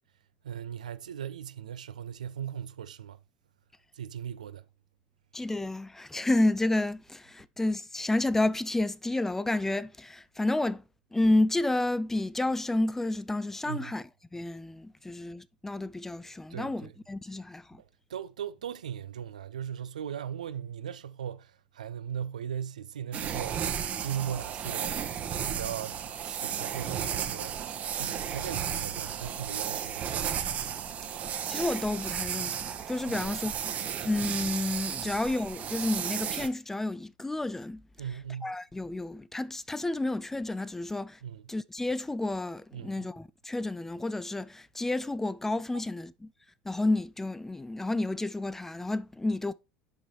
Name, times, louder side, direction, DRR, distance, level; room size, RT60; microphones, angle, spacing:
voice 1, 0.4-3.2 4.0-4.6 13.7-13.9 16.5-16.9 18.1-23.6 24.0-25.0 25.4-27.6 27.9-30.5 33.1-33.3 35.0-35.1 38.0-38.5 41.2-41.4 42.7-43.1, right 9 dB, 75° right, 0.4 m, -38 dB
voice 2, 5.3-10.8 11.1-14.0 14.3-17.8 31.5-33.6 34.0-37.8 38.4-41.2 41.5-46.3 46.7-49.5, left 2 dB, 10° left, 0.4 m, -30 dB
sound 1, 23.1-36.5, right 8 dB, 35° right, 0.9 m, -34 dB
10.5 x 5.3 x 3.1 m
figure-of-eight pair, 70°, 4 cm